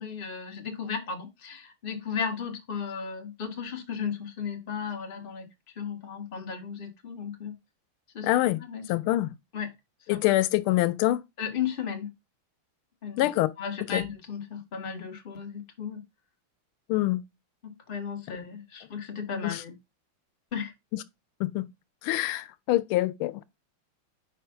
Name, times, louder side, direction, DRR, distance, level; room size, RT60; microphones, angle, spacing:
voice 1, 0.0-5.5 5.8-7.5 8.1-8.3 8.6-8.9 9.5-9.7 10.1-10.2 11.4-12.1 13.0-13.3 13.6-16.0 17.6-19.7 20.5-20.7, left 6 dB, 30° left, 1.3 m, -35 dB
voice 2, 8.2-8.6 8.9-9.3 10.1-11.2 13.2-13.5 13.9-14.0 16.9-17.2 19.4-19.6 20.9-21.0 21.4-21.7 22.0-23.4, left 16 dB, 90° left, 1.4 m, -25 dB
5.0 x 4.3 x 5.6 m
omnidirectional pair, 2.3 m